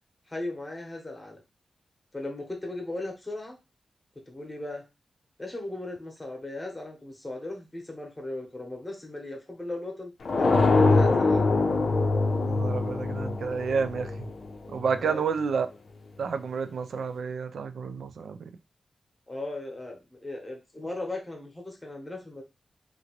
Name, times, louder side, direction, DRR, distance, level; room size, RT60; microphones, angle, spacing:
voice 1, 0.3-1.4 2.1-3.6 4.3-4.8 5.4-10.1 10.4-11.4 15.0-15.2 19.3-22.4, left 2 dB, 15° left, 0.9 m, -37 dB
sound 1, 10.3-15.0, left 3 dB, 65° left, 0.5 m, -23 dB
voice 2, 12.4-14.3 14.7-15.7 16.2-18.5, right 5 dB, 90° right, 0.3 m, -30 dB
2.8 x 2.5 x 2.9 m
wide cardioid pair, 145°, 0 cm